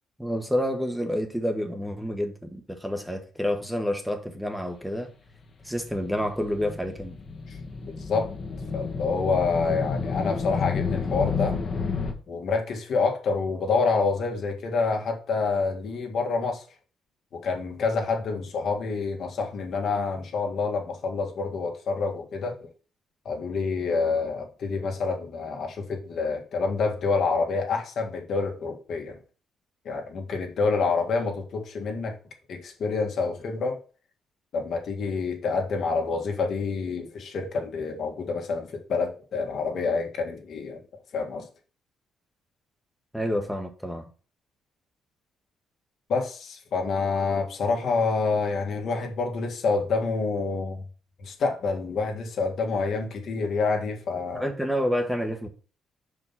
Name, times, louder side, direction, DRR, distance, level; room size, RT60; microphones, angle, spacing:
voice 1, 0.2-5.1 5.6-7.1 43.1-44.1 54.3-55.5, equal, ahead, 1.2 m, -28 dB
sound 1, 5.6-12.1, left 5 dB, 45° left, 1.3 m, -30 dB
voice 2, 8.7-11.6 12.3-16.6 17.3-22.6 23.2-29.2 29.8-32.1 32.5-33.8 34.5-40.8 41.1-41.5 46.1-50.8 51.2-54.5, left 4 dB, 65° left, 1.7 m, -27 dB
5.4 x 4.9 x 5.6 m
cardioid pair, 90°, 0 cm